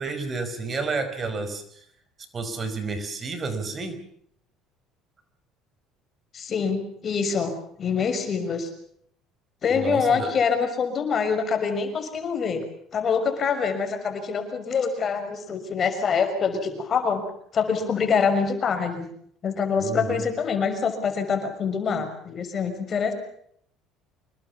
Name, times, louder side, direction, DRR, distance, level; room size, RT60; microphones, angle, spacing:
voice 1, 0.0-1.9 2.3-4.0 9.7-10.3 19.8-20.2, right 4 dB, 35° right, 10 dB, 5.1 m, -30 dB
voice 2, 6.3-8.7 9.6-12.6 12.9-17.2 17.5-19.1 19.4-23.1, left 6 dB, 40° left, 8 dB, 6.1 m, -25 dB
26.5 x 21.5 x 7.1 m, 0.66 s
supercardioid pair, 100°, 0 cm